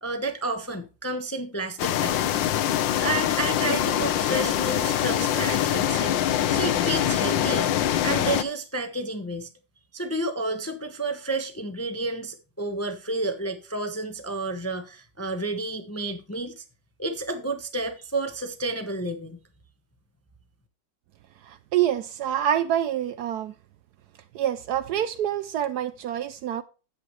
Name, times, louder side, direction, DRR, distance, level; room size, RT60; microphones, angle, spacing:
voice 1, 0.0-2.3 3.0-6.2 6.5-7.7 8.0-9.5 9.9-16.6 17.0-19.4, right 2 dB, 15° left, 0.6 m, -30 dB
sound 1, 1.8-8.4, left 11 dB, 90° left, 1.5 m, -24 dB
voice 2, 21.4-23.5 24.3-26.6, right 10 dB, 70° right, 1.0 m, -26 dB
10.5 x 8.3 x 3.1 m
omnidirectional pair, 2.0 m